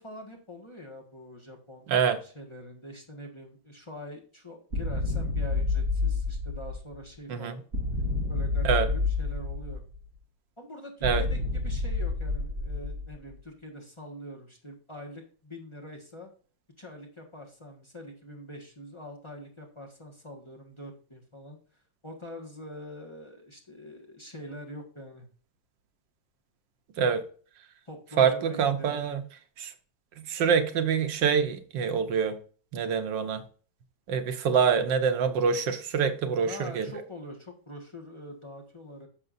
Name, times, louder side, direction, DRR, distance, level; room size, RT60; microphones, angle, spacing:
voice 1, 0.0-7.6 8.3-9.8 10.6-16.3 16.8-21.6 22.0-25.3 27.8-29.1 36.4-39.1, equal, 15° left, 0 dB, 1.5 m, -44 dB
sound 1, 4.7-7.0 7.7-10.0 11.0-13.3, left 3 dB, 40° right, 3.0 m, -29 dB
voice 2, 28.2-29.2 29.6-29.7 30.2-32.4 32.7-33.4 34.1-36.9, right 6 dB, 85° right, 8 dB, 1.7 m, -25 dB
10.5 x 6.7 x 2.6 m, 0.41 s
omnidirectional pair, 1.9 m